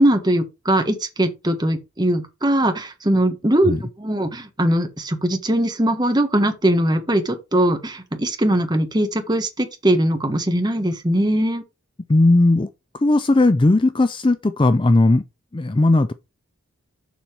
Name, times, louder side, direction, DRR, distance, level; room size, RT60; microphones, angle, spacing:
voice 1, 0.0-11.6, right 1 dB, 20° right, 1.3 m, -20 dB
voice 2, 12.1-12.7 13.0-15.2 15.5-16.1, left 2 dB, 20° left, 0.4 m, -17 dB
7.1 x 5.6 x 4.6 m
head